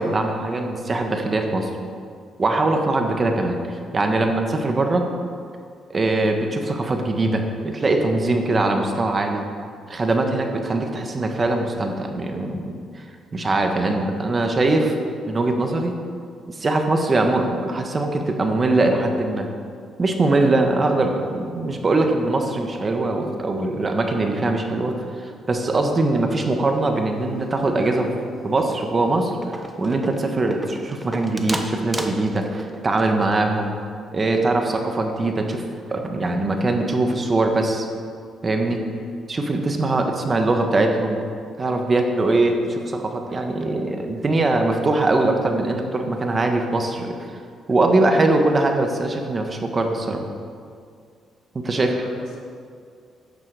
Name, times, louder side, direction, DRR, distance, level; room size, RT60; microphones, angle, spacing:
voice 1, 0.0-1.7 2.4-5.1 5.9-9.4 9.9-13.0 13.3-14.9 15.2-15.9 16.5-19.5 20.0-28.1 28.4-33.8 34.1-35.6 35.9-37.9 38.4-38.8 39.3-41.2 41.6-47.1 47.7-50.2 51.5-51.9, right 2 dB, 30° right, 4 dB, 1.3 m, -22 dB
sound 1, 27.2-27.9 28.2-28.5 28.9-29.0 29.3-33.7, right 1 dB, 15° right, 1.0 m, -33 dB
voice 2, 51.7-52.4, left 2 dB, 70° left, -2 dB, 2.7 m, -39 dB
12.0 x 9.0 x 4.9 m, 2.2 s
cardioid pair, 90°, 0 cm